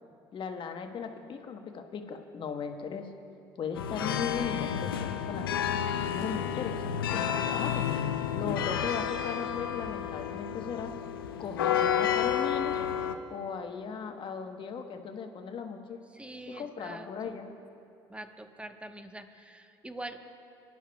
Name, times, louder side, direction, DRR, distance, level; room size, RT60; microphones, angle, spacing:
voice 1, 0.3-3.1 3.6-5.5 6.1-7.9 8.3-10.9 11.4-12.7 13.3-16.0 16.5-17.5, left 6 dB, 45° left, 5 dB, 1.2 m, -37 dB
sound 1, 3.8-13.1, left 9 dB, 90° left, 0.5 m, -31 dB
voice 2, 16.1-17.3 18.1-20.2, right 1 dB, 10° right, 7 dB, 1.1 m, -44 dB
23.5 x 11.0 x 2.3 m, 2.6 s
hypercardioid pair, 60°, 12 cm